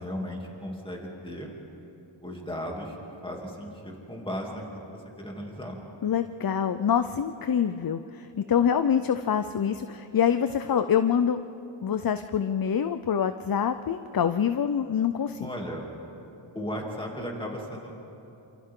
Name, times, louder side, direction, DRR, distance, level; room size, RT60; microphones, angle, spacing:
voice 1, 0.0-1.5 2.2-3.0 3.2-4.7 5.2-5.8 15.4-15.9 16.5-17.9, equal, 10° left, -2 dB, 2.8 m, -35 dB
voice 2, 6.0-11.4 11.8-15.5, left 8 dB, 50° left, 10 dB, 0.6 m, -25 dB
28.5 x 27.0 x 3.8 m, 2.9 s
wide cardioid pair, 110°, 48 cm